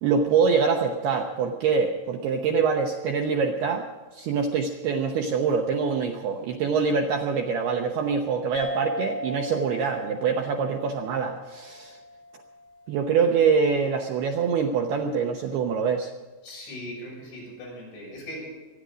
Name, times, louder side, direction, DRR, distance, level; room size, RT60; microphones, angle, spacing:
voice 1, 0.0-3.9 4.1-12.0 12.9-16.1, right 5 dB, 75° right, 3 dB, 2.5 m, -24 dB
sound 1, 8.6-13.5, equal, 20° left, 4.7 m, -38 dB
voice 2, 16.4-18.5, equal, 65° left, -3 dB, 9.1 m, -39 dB
24.5 x 11.0 x 5.1 m, 1.3 s
omnidirectional pair, 5.7 m